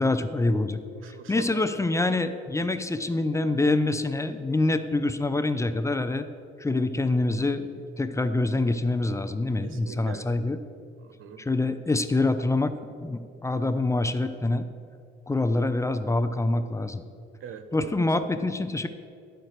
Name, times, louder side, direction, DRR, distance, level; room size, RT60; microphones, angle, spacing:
voice 1, 0.0-0.8 1.3-6.3 6.6-10.6 11.4-12.7 13.0-14.6 15.3-17.0 17.7-18.9, left 2 dB, 15° left, 10 dB, 0.5 m, -25 dB
voice 2, 0.9-1.6 9.6-10.4 11.0-11.4 17.4-17.9, right 8 dB, 80° right, 9 dB, 0.7 m, -41 dB
10.5 x 4.6 x 6.6 m, 2.3 s
cardioid pair, 90°, 20 cm